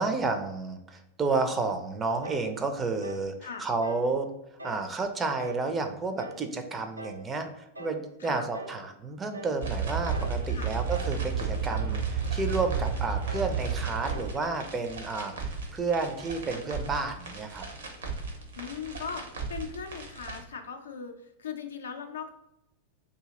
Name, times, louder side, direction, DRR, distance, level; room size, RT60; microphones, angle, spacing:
voice 1, 0.0-3.3 3.6-4.3 4.6-17.6, right 3 dB, 20° right, 7 dB, 0.5 m, -31 dB
sound 1, 2.2-2.5 3.0-3.3 3.8-4.1 4.6-4.9 5.4-5.7 6.2-6.5 7.0-7.3 7.8-8.0 8.5-8.9 9.3-9.6 10.1-10.4 10.9-11.3 11.7-12.0 12.5-12.8 13.3-13.6 14.1-14.4, right 2 dB, 85° right, 0.4 m, -42 dB
sound 2, 9.6-20.4, right 5 dB, 65° right, 0.8 m, -33 dB
voice 2, 18.6-22.3, left 6 dB, 65° left, 6 dB, 0.4 m, -39 dB
2.7 x 2.7 x 3.7 m, 0.82 s
figure-of-eight pair, 90°, 0 cm